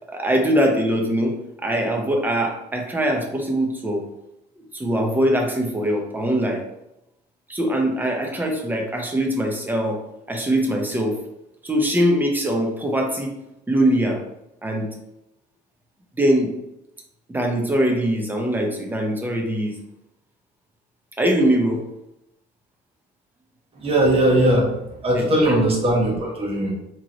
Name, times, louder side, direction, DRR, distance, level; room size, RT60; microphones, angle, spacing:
voice 1, 0.1-1.3 1.6-4.0 4.7-6.6 7.5-10.0 10.3-11.1 11.6-13.3 13.7-14.2 14.6-14.9 16.2-16.5 17.3-19.7 21.2-21.8 25.1-25.6, right 1 dB, 10° right, 1 dB, 0.8 m, -22 dB
voice 2, 23.8-24.7 25.0-26.8, right 1 dB, 35° right, -2 dB, 1.3 m, -19 dB
3.7 x 3.1 x 3.0 m, 0.86 s
cardioid pair, 110°, 17 cm